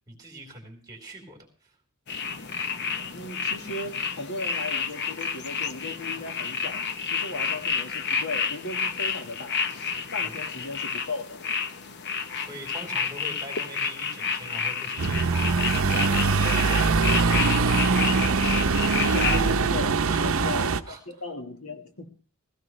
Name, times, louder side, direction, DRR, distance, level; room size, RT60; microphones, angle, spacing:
voice 1, 0.1-1.7 10.3-10.5 12.3-17.6 20.1-20.6 20.9-21.0, right 1 dB, 20° right, 3.7 m, -42 dB
sound 1, 2.1-19.5, left 6 dB, 55° left, 0.9 m, -30 dB
voice 2, 3.1-9.6 10.1-11.5 19.0-20.8 21.1-22.1, left 2 dB, 80° left, 1.6 m, -37 dB
sound 2, 15.0-20.8, right 4 dB, 70° right, 0.7 m, -23 dB
16.5 x 16.5 x 3.2 m
head